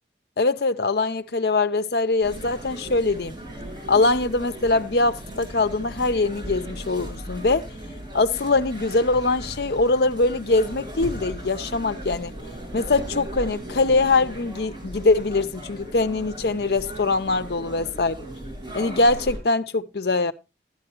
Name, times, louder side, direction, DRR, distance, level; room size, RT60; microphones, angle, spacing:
voice 1, 0.4-3.4 3.9-7.7 8.1-12.3 12.7-18.2 18.7-20.3, left 3 dB, 70° left, 0.7 m, -22 dB
sound 1, 2.2-19.4, right 1 dB, 25° right, 5.9 m, -37 dB
13.0 x 9.8 x 3.0 m
head